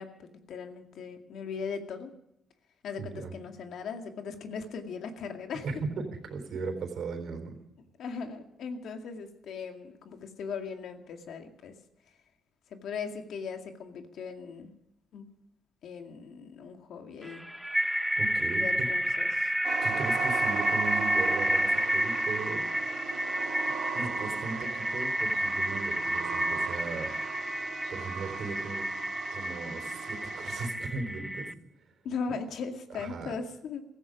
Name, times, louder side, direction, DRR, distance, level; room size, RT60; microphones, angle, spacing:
voice 1, 0.0-2.1 2.8-5.7 8.0-11.8 12.7-14.7 15.1-15.3 15.8-17.4 18.5-19.5 32.0-33.8, left 5 dB, 70° left, 5 dB, 2.1 m, -38 dB
voice 2, 3.0-3.3 5.6-7.6 18.2-18.9 19.8-22.6 23.9-27.1 27.9-28.9 29.3-31.5 31.8-31.9 32.9-33.4, right 4 dB, 65° right, 7 dB, 3.8 m, -37 dB
sound 1, 17.2-31.5, equal, ahead, 0.9 m, -30 dB
sound 2, 19.6-30.7, right 8 dB, 85° right, 1.8 m, -38 dB
16.5 x 14.5 x 5.2 m, 0.84 s
cardioid pair, 90°, 0 cm